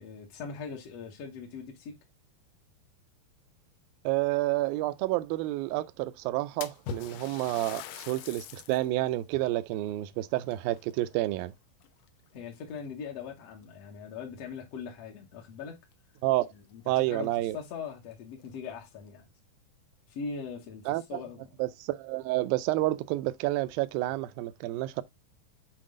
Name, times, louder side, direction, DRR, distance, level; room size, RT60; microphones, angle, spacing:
voice 1, 0.0-1.9 12.3-15.8 16.5-19.3 20.1-21.5, left 5 dB, 60° left, 1.8 m, -41 dB
voice 2, 4.1-11.5 16.2-16.5 16.9-17.6 20.9-21.0 21.6-25.0, right 17 dB, 85° right, 2.3 m, -29 dB
Splash splatter, 6.6-8.9 9.4-9.5 10.4-11.5 11.8-12.3 13.1-13.2 13.6-13.7 15.9-16.0 16.3-16.4 17.0-17.1 17.5-17.6 18.3-18.9, left 9 dB, 80° left, 2.2 m, -43 dB
7.7 x 4.4 x 3.7 m
omnidirectional pair, 4.2 m